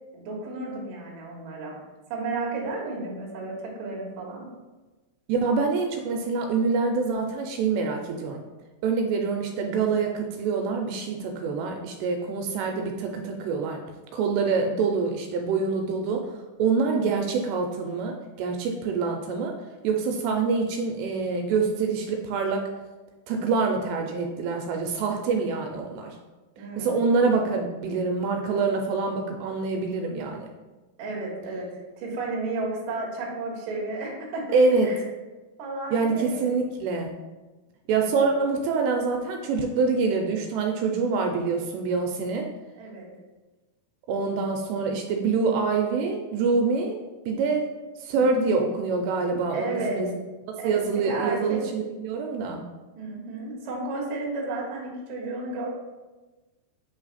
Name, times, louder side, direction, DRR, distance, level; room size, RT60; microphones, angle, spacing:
voice 1, 0.1-1.7 2.1-4.5 26.6-27.0 31.0-31.7 32.0-34.6 34.8-35.0 35.6-36.5 37.9-38.2 42.8-43.1 48.1-48.2 49.5-50.0 50.6-51.6 53.0-55.7, right 3 dB, 60° right, -3 dB, 2.1 m, -33 dB
voice 2, 5.3-8.4 8.8-13.8 14.1-16.2 16.6-19.5 19.8-22.7 23.3-26.2 26.8-30.5 34.5-34.9 35.9-37.1 37.9-42.5 44.1-47.0 47.3-47.7 48.0-50.1 50.6-52.6, right 4 dB, 85° right, 2 dB, 2.6 m, -25 dB
8.3 x 3.2 x 4.0 m, 1.2 s
omnidirectional pair, 5.0 m